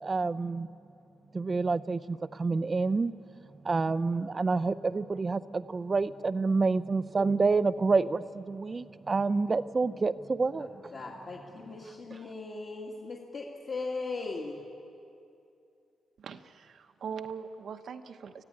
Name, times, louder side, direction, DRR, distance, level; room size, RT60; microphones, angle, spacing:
voice 1, 0.0-0.7 1.3-3.1 3.6-10.8, right 4 dB, 25° right, 15 dB, 0.6 m, -28 dB
voice 2, 10.6-14.6, left 3 dB, 45° left, -3 dB, 2.1 m, -38 dB
voice 3, 16.2-18.4, right 6 dB, 60° right, 7 dB, 0.9 m, -41 dB
25.0 x 15.5 x 9.9 m, 2.6 s
wide cardioid pair, 155°, 0 cm